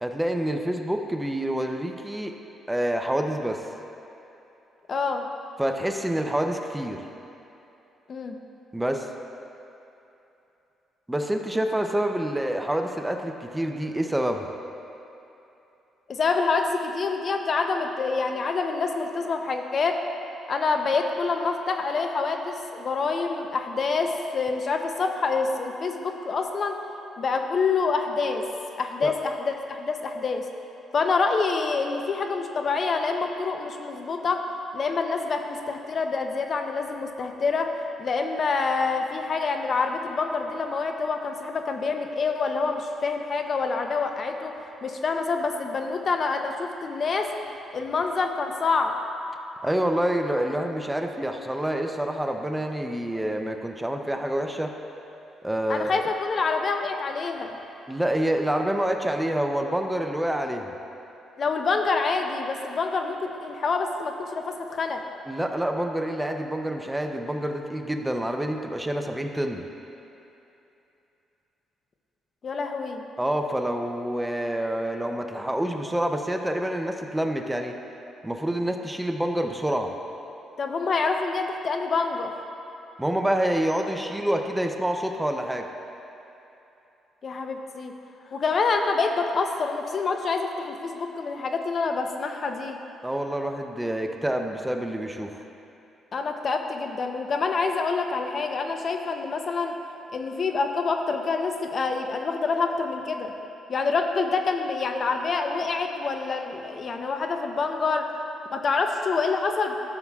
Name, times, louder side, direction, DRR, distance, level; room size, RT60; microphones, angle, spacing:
voice 1, 0.0-2.3 2.7-3.6 5.6-7.0 8.7-9.1 11.1-14.5 29.0-29.1 49.6-54.7 55.4-56.1 57.9-60.7 65.3-69.6 73.2-77.7 78.2-79.9 83.0-85.7 93.0-95.4, right 1 dB, 10° right, 4 dB, 0.5 m, -27 dB
voice 2, 4.9-5.2 8.1-8.4 16.1-20.0 20.5-26.8 27.2-28.5 28.8-30.5 30.9-34.4 34.7-37.7 38.0-44.5 44.8-47.3 47.7-48.9 55.7-57.6 61.4-65.0 72.4-73.0 80.6-82.3 87.2-87.9 88.3-92.8 96.1-99.7 100.1-103.3 103.7-108.1 108.5-109.8, left 4 dB, 45° left, 5 dB, 0.6 m, -26 dB
13.5 x 7.1 x 2.3 m, 2.9 s
cardioid pair, 90°, 0 cm